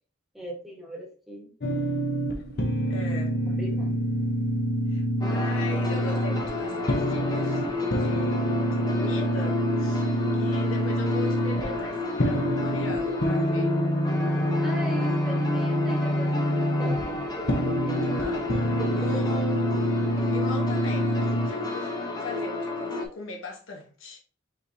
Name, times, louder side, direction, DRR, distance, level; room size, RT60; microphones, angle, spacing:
voice 1, 0.3-1.5 3.0-3.1 3.5-4.0 14.6-18.1 18.8-19.2 20.0-20.4, right 1 dB, ahead, 1.1 m, -39 dB
sound 1, 1.6-21.5, equal, 50° left, 0.7 m, -27 dB
voice 2, 2.9-3.4 4.9-10.1 10.3-13.8 18.0-19.8 20.2-21.9 22.2-24.2, left 2 dB, 80° left, 1.1 m, -39 dB
sound 2, 5.2-23.1, left 3 dB, 20° left, 0.6 m, -31 dB
5.3 x 3.3 x 2.6 m
head